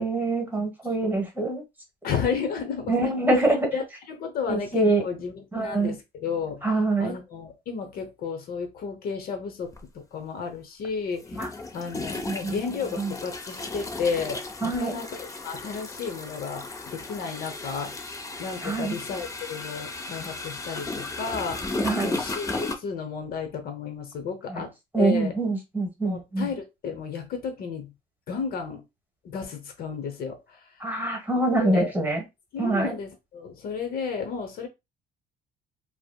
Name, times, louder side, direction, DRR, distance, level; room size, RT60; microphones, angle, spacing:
voice 1, 0.0-1.6 2.9-3.8 4.5-5.0 5.5-5.9 6.6-7.1 11.4-11.5 12.3-12.5 13.0-13.1 14.6-15.0 18.6-19.0 21.8-22.1 24.5-24.6 24.9-26.5 30.8-32.2 32.6-33.0, right 2 dB, 10° right, 1.2 m, -25 dB
voice 2, 2.0-3.1 3.7-6.7 7.0-11.2 11.7-15.1 15.4-21.7 22.0-25.3 26.0-27.9 28.3-28.8 29.2-30.6 31.6-31.9 32.5-34.7, left 6 dB, 65° left, 0.8 m, -33 dB
sound 1, 9.7-9.8 11.2-22.7, left 3 dB, 20° left, 0.5 m, -35 dB
4.8 x 2.0 x 2.3 m
cardioid pair, 110°, 17 cm